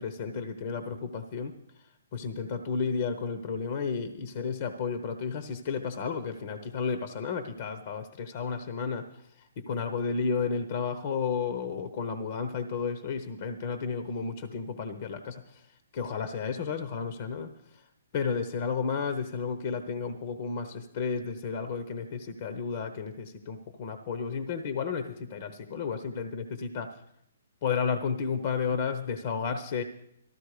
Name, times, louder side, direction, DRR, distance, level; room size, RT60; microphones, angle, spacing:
voice 1, 0.0-1.6 2.1-9.1 9.6-15.6 15.9-17.8 18.1-27.0 27.6-29.8, left 5 dB, 45° left, 10 dB, 1.0 m, -32 dB
13.5 x 13.0 x 5.0 m, 0.73 s
hypercardioid pair, 140°, 0 cm